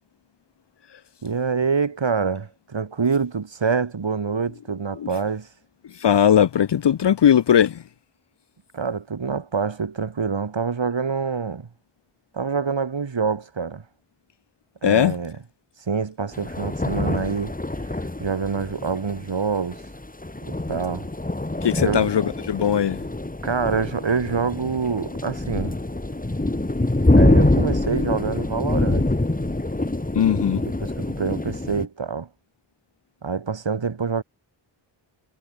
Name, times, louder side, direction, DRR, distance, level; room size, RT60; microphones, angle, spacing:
voice 1, 1.2-5.5 8.7-11.7 12.3-13.8 14.8-15.4 15.9-17.5 18.2-19.8 20.4-21.1 21.8-22.1 23.4-25.8 27.2-29.1 30.8-32.3 33.2-34.2, right 5 dB, 65° right, 4.3 m, -26 dB
voice 2, 5.9-7.8 14.8-15.2 21.6-23.0 30.1-30.6, left 9 dB, 55° left, 0.8 m, -19 dB
sound 1, 16.3-31.9, left 2 dB, 15° left, 2.6 m, -25 dB
cardioid pair, 45°, 49 cm